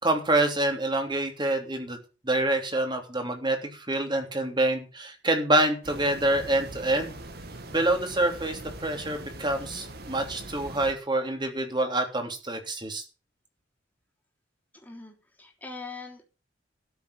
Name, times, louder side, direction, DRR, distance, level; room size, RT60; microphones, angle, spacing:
voice 1, 0.0-2.0 2.2-7.1 7.7-13.0, right 2 dB, 25° right, 4 dB, 3.2 m, -26 dB
sound 1, 5.8-10.9, right 1 dB, 55° right, 2.2 m, -42 dB
voice 2, 14.7-16.2, left 4 dB, 10° left, 1 dB, 3.3 m, -42 dB
13.0 x 7.3 x 8.5 m, 0.33 s
head